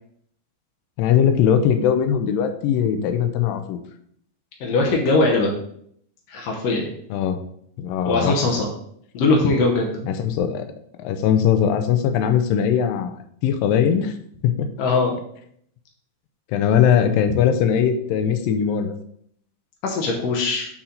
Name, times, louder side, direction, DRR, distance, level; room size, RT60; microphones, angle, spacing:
voice 1, 1.0-3.8 7.1-7.4 7.8-8.4 10.1-10.7 11.0-14.1 14.4-14.7 16.5-19.0, left 8 dB, 85° left, 8 dB, 2.4 m, -20 dB
voice 2, 4.6-5.5 6.3-7.0 8.0-8.7 9.1-10.1 14.8-15.1 19.8-20.7, left 3 dB, 65° left, 0 dB, 1.7 m, -20 dB
8.1 x 4.5 x 3.8 m, 0.66 s
omnidirectional pair, 4.0 m